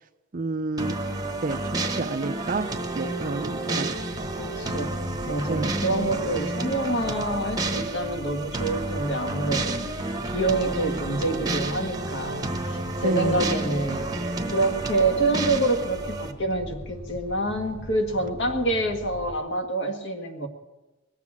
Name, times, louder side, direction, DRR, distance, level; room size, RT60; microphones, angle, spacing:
voice 1, 0.3-1.0 1.4-2.7 2.9-3.9 4.5-4.6 5.5-5.7 13.0-13.5, right 3 dB, 40° right, 11 dB, 0.5 m, -29 dB
sound 1, 0.8-16.3, right 2 dB, 20° right, 1.0 m, -30 dB
sound 2, 3.9-19.4, equal, 85° left, 3.1 m, -41 dB
voice 2, 4.4-14.2 14.5-20.5, right 2 dB, 55° left, 4 dB, 1.8 m, -27 dB
20.5 x 7.5 x 7.3 m, 1.1 s
head